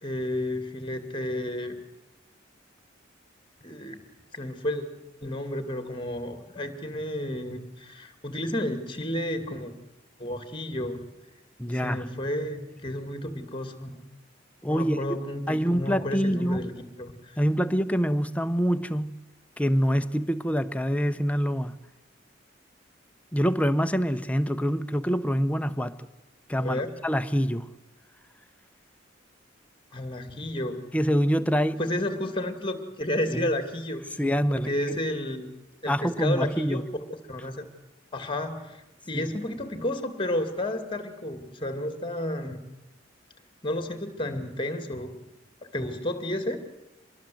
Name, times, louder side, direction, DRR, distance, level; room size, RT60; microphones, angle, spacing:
voice 1, 0.0-1.8 3.6-4.0 4.3-4.9 5.2-9.7 10.2-11.0 11.7-13.9 14.7-17.4 26.6-26.9 29.9-30.8 31.8-34.0 34.5-35.5 35.8-37.7 38.1-42.6 43.6-45.2 45.6-46.6, left 1 dB, 25° left, 2.3 m, -31 dB
voice 2, 11.6-12.0 14.6-15.0 15.5-16.7 17.4-19.2 19.6-21.8 23.3-26.1 26.5-27.7 30.9-31.8 33.3-33.5 34.2-35.0 35.9-36.9 39.1-39.3 45.7-45.8, equal, 5° left, 0.8 m, -25 dB
25.5 x 21.0 x 7.8 m
head